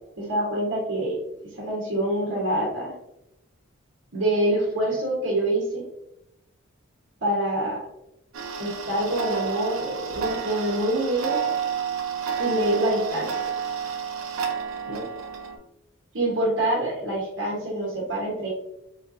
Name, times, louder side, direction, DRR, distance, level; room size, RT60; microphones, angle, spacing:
voice 1, 0.2-1.2 1.5-2.9 4.1-5.8 7.2-7.8 8.6-11.5 12.4-13.4 14.9-15.0 16.1-18.5, right 1 dB, 65° right, -4 dB, 1.1 m, -26 dB
Tick-tock, 8.3-15.6, right 7 dB, 80° right, 0.7 m, -30 dB
4.1 x 3.5 x 2.6 m, 0.86 s
head